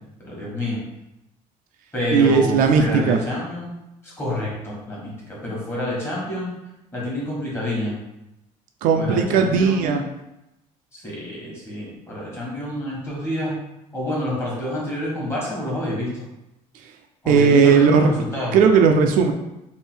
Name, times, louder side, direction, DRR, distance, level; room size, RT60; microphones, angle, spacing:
voice 1, 0.2-0.8 1.9-3.7 4.0-6.5 6.9-8.0 8.9-10.0 10.9-13.5 13.9-16.2 17.2-18.6, left 1 dB, 15° left, -5 dB, 1.3 m, -28 dB
voice 2, 2.1-3.2 8.8-10.0 17.3-18.1 18.5-19.3, right 5 dB, 65° right, 5 dB, 0.4 m, -16 dB
3.3 x 2.6 x 4.4 m, 0.91 s
cardioid pair, 170°, 15 cm